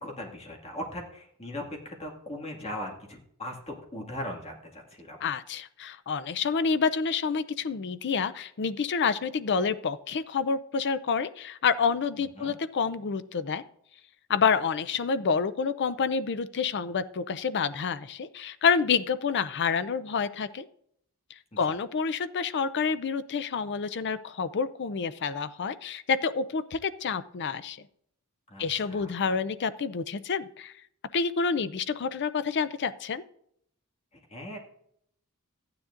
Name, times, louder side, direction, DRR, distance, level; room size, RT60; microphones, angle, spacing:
voice 1, 0.0-5.2 12.4-12.6 21.5-21.7 28.5-29.3 34.1-34.6, left 1 dB, 30° left, 0 dB, 2.0 m, -39 dB
voice 2, 5.2-13.6 14.3-20.7 21.6-27.9 28.6-30.7 31.1-33.2, left 5 dB, 50° left, 14 dB, 0.5 m, -28 dB
14.5 x 9.7 x 2.5 m, 0.69 s
head